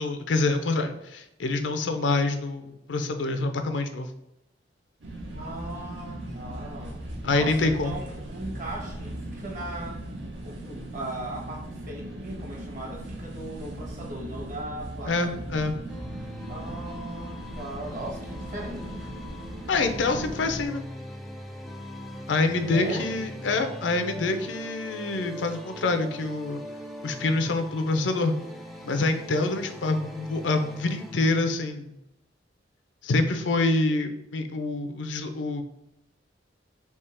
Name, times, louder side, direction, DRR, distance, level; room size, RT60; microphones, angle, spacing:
voice 1, 0.0-4.1 7.2-8.0 15.1-15.7 19.7-20.8 22.3-26.6 27.0-28.4 28.8-31.9 33.0-35.6, left 3 dB, 85° left, 8 dB, 0.5 m, -26 dB
sound 1, 5.0-20.7, right 1 dB, 80° right, 1.0 m, -38 dB
voice 2, 5.3-10.0 10.4-15.4 16.5-19.0 22.7-23.1, right 1 dB, 45° right, 0 dB, 1.2 m, -38 dB
sound 2, 15.9-31.3, left 1 dB, ahead, 0.5 m, -41 dB
3.6 x 2.8 x 4.3 m, 0.85 s
head